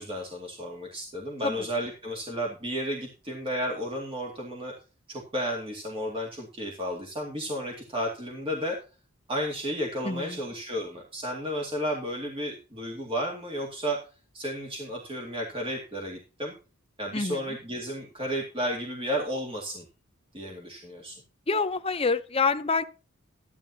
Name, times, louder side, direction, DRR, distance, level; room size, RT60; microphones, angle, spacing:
voice 1, 0.0-4.7 5.1-8.8 9.3-14.0 14.3-16.5 17.0-19.8 20.3-21.2, equal, 25° right, -1 dB, 2.2 m, -33 dB
voice 2, 10.0-10.4 17.1-17.6 21.5-22.8, left 4 dB, 25° left, 9 dB, 0.7 m, -27 dB
13.5 x 11.0 x 2.9 m, 0.34 s
head